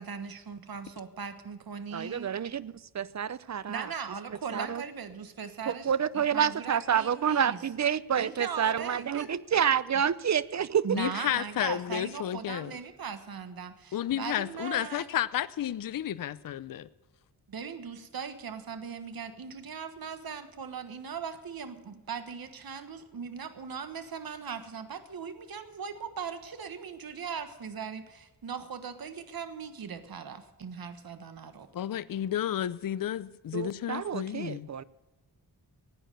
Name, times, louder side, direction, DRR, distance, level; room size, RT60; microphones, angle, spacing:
voice 1, 0.0-2.3 3.7-7.6 8.2-9.3 10.8-15.1 17.5-31.7, right 6 dB, 60° right, 9 dB, 1.4 m, -39 dB
voice 2, 1.9-3.9 4.5-4.8 5.7-10.9 33.5-34.8, right 8 dB, 45° right, 19 dB, 0.6 m, -28 dB
voice 3, 10.9-12.8 13.9-16.9 31.7-34.7, left 11 dB, 55° left, 17 dB, 0.6 m, -32 dB
16.0 x 9.7 x 6.6 m, 1.1 s
cardioid pair, 85°, 40 cm